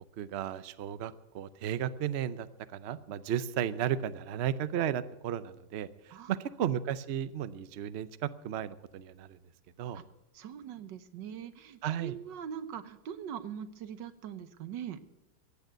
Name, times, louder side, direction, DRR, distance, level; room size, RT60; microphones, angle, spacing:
voice 1, 0.2-2.5 2.7-9.4 9.8-10.0 11.8-12.2, right 10 dB, 60° right, 14 dB, 0.6 m, -34 dB
voice 2, 10.3-15.0, right 8 dB, 80° right, 12 dB, 1.6 m, -42 dB
15.0 x 9.2 x 8.2 m, 0.90 s
omnidirectional pair, 1.9 m